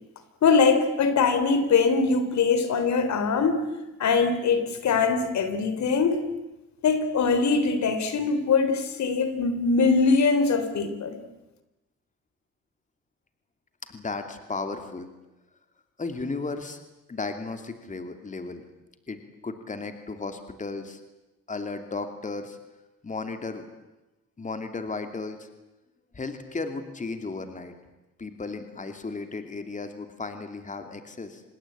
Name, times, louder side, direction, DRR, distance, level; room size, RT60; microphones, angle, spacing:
voice 1, 0.4-3.6 4.0-6.2 6.8-11.2, left 4 dB, 65° left, 10 dB, 3.5 m, -22 dB
voice 2, 13.8-15.1 16.0-16.8 17.1-18.6 19.1-19.2 19.4-21.0 21.5-22.6 23.0-23.7 24.4-25.5 26.1-27.7 28.2-31.4, left 3 dB, 25° left, 7 dB, 2.7 m, -34 dB
26.5 x 20.5 x 8.8 m, 1.0 s
cardioid pair, 90°, 30 cm